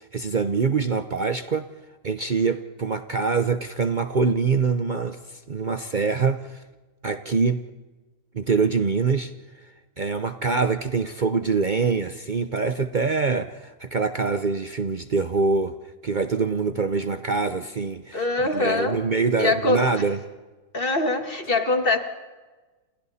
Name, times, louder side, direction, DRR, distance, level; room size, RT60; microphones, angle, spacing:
voice 1, 0.0-1.6 2.0-6.6 7.0-7.6 8.3-9.3 10.0-15.7 16.0-20.2, right 4 dB, 90° right, 9 dB, 0.4 m, -24 dB
voice 2, 18.1-19.0 19.4-19.8 20.7-22.0, left 3 dB, 30° left, 5 dB, 2.0 m, -23 dB
28.5 x 28.5 x 4.2 m, 1.2 s
omnidirectional pair, 2.0 m